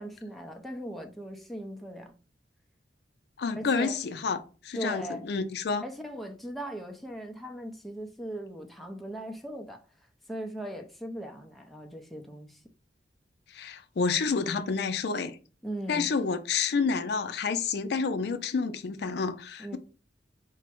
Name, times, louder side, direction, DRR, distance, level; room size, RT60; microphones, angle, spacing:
voice 1, 0.0-2.2 3.6-4.0 4.7-5.3 5.8-9.8 10.3-12.6 15.6-16.1 19.6-19.8, right 1 dB, ahead, 0.5 m, -39 dB
voice 2, 3.4-4.4 4.6-5.8 13.5-15.4 15.9-19.8, left 5 dB, 65° left, 0.4 m, -29 dB
4.5 x 2.0 x 4.3 m
head